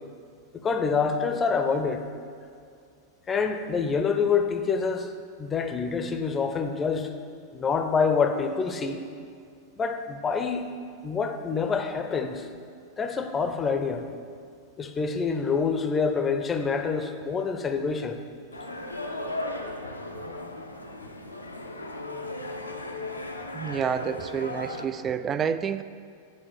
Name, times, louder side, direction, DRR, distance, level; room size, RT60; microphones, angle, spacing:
voice 1, 0.5-2.0 3.3-5.1 5.4-7.1 7.5-9.0 9.8-10.7 11.0-12.5 13.0-14.1 14.8-18.2, left 5 dB, 20° left, 7 dB, 0.7 m, -26 dB
sound 1, 18.5-24.8, left 2 dB, 85° left, 0.6 m, -36 dB
voice 2, 23.5-25.8, right 7 dB, 25° right, 13 dB, 0.3 m, -29 dB
8.8 x 4.4 x 7.4 m, 2.3 s
figure-of-eight pair, 90°, 0 cm